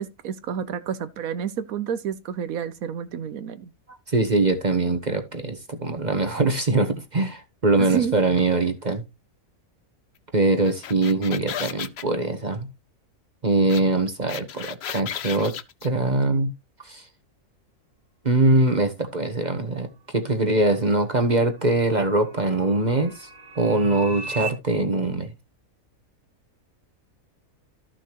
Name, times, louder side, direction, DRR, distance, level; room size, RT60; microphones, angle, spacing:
voice 1, 0.0-3.7 7.8-8.2, right 8 dB, 85° right, 1.2 m, -30 dB
voice 2, 4.1-9.0 10.3-12.7 13.4-15.6 15.8-16.5 16.9-17.0 18.2-19.9 20.1-23.3 23.6-25.3, right 2 dB, 35° right, 1.2 m, -22 dB
sound 1, 10.6-12.0 13.7-13.8 14.1-15.9, left 10 dB, 60° left, 0.8 m, -34 dB
sound 2, 20.2-24.5, right 4 dB, 65° right, 2.3 m, -40 dB
14.0 x 6.4 x 3.0 m
omnidirectional pair, 1.5 m